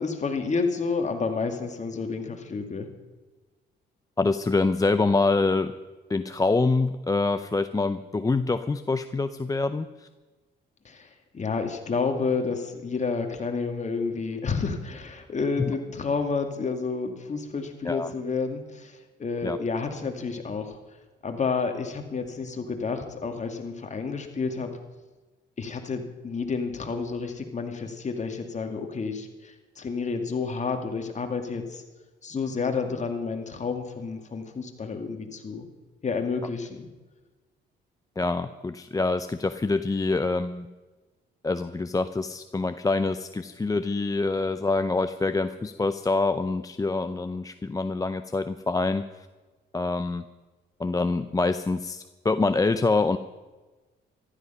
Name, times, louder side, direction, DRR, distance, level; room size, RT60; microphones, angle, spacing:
voice 1, 0.0-2.9 10.8-20.8 21.2-24.7 25.6-31.8 32.2-35.7 36.0-36.9, left 4 dB, 35° left, 5 dB, 2.2 m, -30 dB
voice 2, 4.2-5.7 6.1-10.1 15.6-15.7 17.8-18.1 19.4-19.6 38.2-40.7 41.4-49.3 49.7-50.2 50.8-53.2, left 3 dB, 15° left, 10 dB, 0.6 m, -25 dB
14.5 x 12.5 x 5.6 m, 1.2 s
cardioid pair, 90°, 20 cm